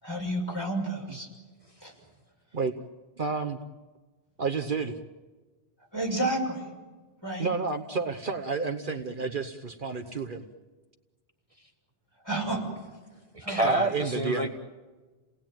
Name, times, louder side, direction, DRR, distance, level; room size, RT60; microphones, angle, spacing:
voice 1, 0.0-1.3 1.8-1.9 5.9-6.7 7.2-7.5 12.2-12.6 13.4-13.8, right 1 dB, 25° left, -1 dB, 6.4 m, -30 dB
voice 2, 3.2-3.6 4.4-4.9 7.4-10.4 13.6-14.5, right 4 dB, 55° right, 6 dB, 1.2 m, -30 dB
voice 3, 13.3-14.5, right 2 dB, 35° right, 2 dB, 1.5 m, -27 dB
29.5 x 19.0 x 9.1 m, 1.3 s
omnidirectional pair, 1.1 m